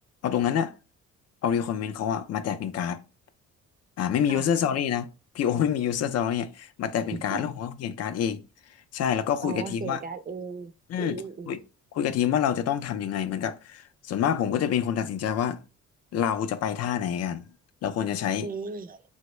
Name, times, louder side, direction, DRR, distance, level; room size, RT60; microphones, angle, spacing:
voice 1, 0.2-0.7 1.4-3.0 4.0-5.1 5.3-8.4 8.9-10.0 10.9-11.2 11.5-11.6 11.9-15.6 16.1-17.4 17.8-18.5, left 9 dB, 55° left, 0.4 m, -27 dB
voice 2, 9.4-11.5 18.4-19.0, right 5 dB, 30° right, 0.4 m, -36 dB
3.6 x 2.0 x 3.0 m
cardioid pair, 90°, 30 cm